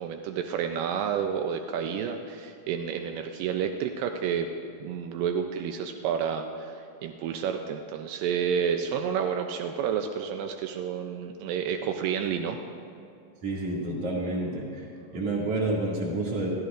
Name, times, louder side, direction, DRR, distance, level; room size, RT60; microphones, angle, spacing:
voice 1, 0.0-4.5 4.8-12.6, right 7 dB, 85° right, 5 dB, 2.3 m, -30 dB
voice 2, 13.4-14.7 15.1-16.5, right 2 dB, 50° right, -4 dB, 3.1 m, -29 dB
22.5 x 14.0 x 2.5 m, 2.5 s
omnidirectional pair, 3.9 m